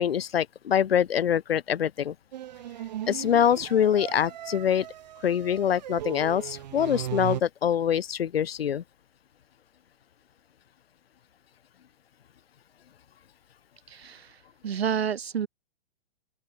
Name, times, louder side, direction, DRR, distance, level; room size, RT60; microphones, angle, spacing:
voice 1, 0.0-2.1 3.1-4.9 5.2-8.8, left 9 dB, 80° left, 1.3 m, -24 dB
sound 1, 2.3-7.4, right 12 dB, 45° right, 3.3 m, -37 dB
voice 2, 13.9-14.4 14.6-15.5, right 8 dB, 90° right, 2.1 m, -29 dB
open air
hypercardioid pair, 170°, 30 cm